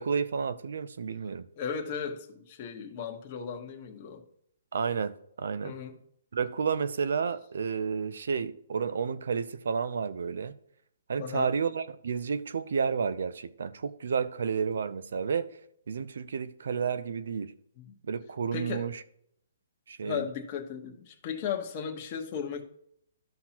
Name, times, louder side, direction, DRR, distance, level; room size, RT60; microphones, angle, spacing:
voice 1, 0.0-1.5 4.7-5.8 6.3-10.5 11.1-15.5 15.9-17.5 18.0-19.0 19.9-20.3, right 6 dB, 75° right, 0.6 m, -31 dB
voice 2, 1.6-4.2 5.6-6.0 11.2-11.5 17.8-18.0 18.5-18.8 20.0-22.6, left 7 dB, 30° left, 1.2 m, -36 dB
13.0 x 5.7 x 3.0 m
hypercardioid pair, 160°, 0 cm